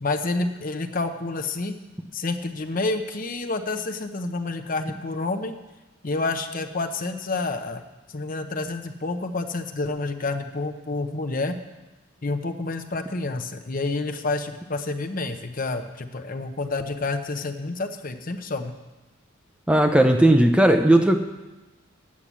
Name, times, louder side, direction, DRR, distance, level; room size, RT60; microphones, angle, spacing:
voice 1, 0.0-1.7 2.1-5.5 6.0-11.6 12.2-18.7, left 3 dB, 45° left, 7 dB, 0.8 m, -29 dB
voice 2, 19.7-21.2, right 1 dB, 5° right, 5 dB, 0.5 m, -16 dB
9.6 x 8.5 x 7.4 m, 1.1 s
head